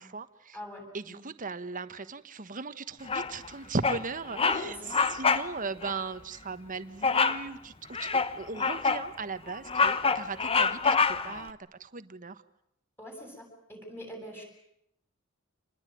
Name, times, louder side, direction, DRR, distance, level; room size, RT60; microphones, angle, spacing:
voice 1, 0.0-0.6 0.9-4.8 5.1-7.7 8.0-12.4, right 4 dB, 40° right, 12 dB, 1.3 m, -38 dB
voice 2, 0.5-1.2 4.3-4.9 13.0-14.4, left 1 dB, 10° left, 2 dB, 8.0 m, -41 dB
Bird vocalization bird call bird song, 3.1-3.5 3.8-4.1 4.3-4.6 4.9-5.5 5.8-6.0 7.0-7.4 7.9-9.1 9.5-11.4, left 5 dB, 30° left, 1.1 m, -26 dB
27.5 x 20.5 x 9.3 m, 0.77 s
head